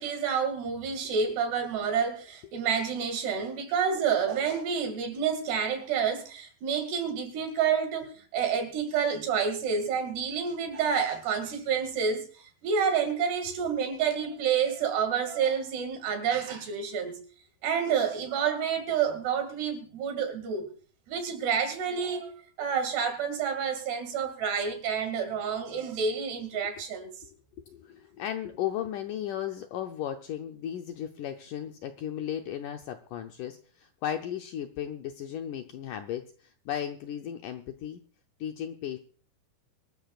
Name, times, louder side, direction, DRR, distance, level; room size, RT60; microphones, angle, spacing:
voice 1, 0.0-17.2 17.6-20.7 21.1-27.1, right 7 dB, 85° right, 4.4 m, -29 dB
voice 2, 27.7-38.0 38.4-39.0, left 10 dB, 80° left, 1.9 m, -35 dB
24.5 x 13.5 x 2.4 m
omnidirectional pair, 4.6 m